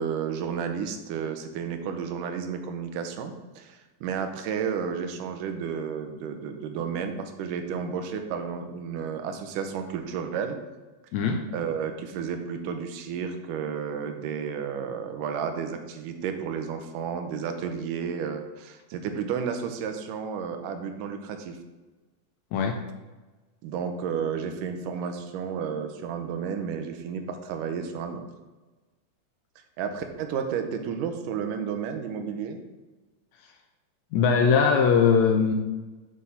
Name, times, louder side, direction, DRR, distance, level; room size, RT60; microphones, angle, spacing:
voice 1, 0.0-10.6 11.5-21.6 23.6-28.2 29.8-32.6, right 7 dB, 90° right, 6 dB, 2.4 m, -32 dB
voice 2, 11.1-11.4 22.5-22.8 34.1-35.5, left 6 dB, 80° left, 4 dB, 1.7 m, -20 dB
8.1 x 5.0 x 5.5 m, 1.2 s
omnidirectional pair, 3.7 m